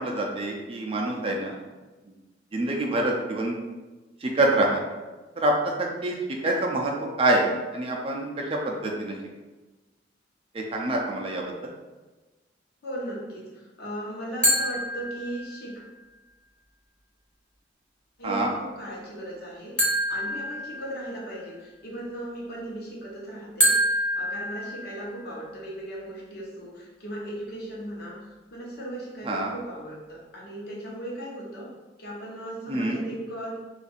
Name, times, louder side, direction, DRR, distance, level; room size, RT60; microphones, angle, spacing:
voice 1, 0.0-1.5 2.5-3.5 4.2-4.8 5.4-6.2 6.4-6.9 7.2-9.1 10.5-11.4 18.2-18.5 29.2-29.5 32.7-33.0, right 2 dB, 30° right, 0 dB, 0.4 m, -26 dB
voice 2, 12.8-15.8 18.2-31.7 32.0-33.6, right 1 dB, 60° left, -4 dB, 0.9 m, -37 dB
sound 1, 14.4-15.7 19.8-21.3 23.6-25.3, equal, 5° left, 0.7 m, -26 dB
2.6 x 2.4 x 4.0 m, 1.2 s
head